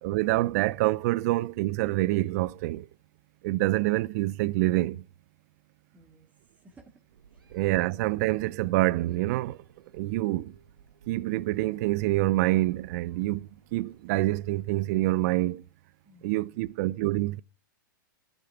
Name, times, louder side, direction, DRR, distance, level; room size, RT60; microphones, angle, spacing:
voice 1, 0.0-2.9 3.4-5.1 7.5-9.6 9.9-10.5 11.1-15.6 16.2-17.4, right 18 dB, 50° right, 0.7 m, -26 dB
voice 2, 5.9-7.0 7.3-7.6 16.0-16.7, right 2 dB, 15° right, 2.4 m, -58 dB
sound 1, 7.1-15.0, right 5 dB, 85° right, 1.8 m, -55 dB
13.0 x 9.0 x 4.7 m
hypercardioid pair, 115°, 11 cm